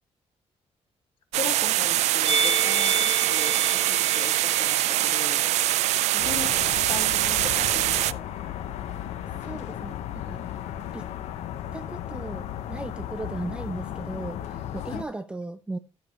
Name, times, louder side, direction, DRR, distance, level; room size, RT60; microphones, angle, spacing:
voice 1, 1.3-5.5 6.1-8.2 14.9-15.0, left 5 dB, 50° left, 3.4 m, -38 dB
sound 1, 1.3-8.1, right 14 dB, 85° right, 0.4 m, -23 dB
Musical instrument, 2.2-7.5 7.7-8.0, right 4 dB, 60° right, 3.4 m, -32 dB
sound 2, 6.2-15.0, left 11 dB, 75° left, 0.9 m, -35 dB
voice 2, 9.4-10.4 10.9-11.1 11.7-15.8, right 2 dB, 10° right, 0.4 m, -37 dB
13.0 x 7.2 x 2.9 m
cardioid pair, 180°, 11 cm